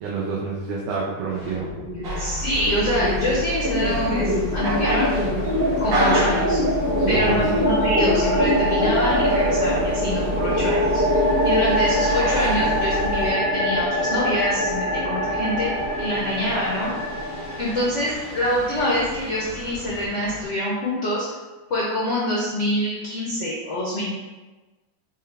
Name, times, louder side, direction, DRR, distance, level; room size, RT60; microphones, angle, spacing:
voice 1, 0.0-1.7 7.1-7.6, right 4 dB, 85° right, -5 dB, 1.5 m, -28 dB
sound 1, 1.3-2.1 2.4-20.5, equal, 35° right, 0.8 m, -24 dB
sound 2, 2.0-13.3, equal, 60° right, 1.9 m, -29 dB
voice 2, 2.2-5.1 5.8-6.6 7.1-11.0 11.4-15.7 16.0-16.9 17.6-21.3 21.7-24.1, equal, 70° left, -7 dB, 0.6 m, -25 dB
5.4 x 2.2 x 3.3 m, 1.2 s
omnidirectional pair, 2.3 m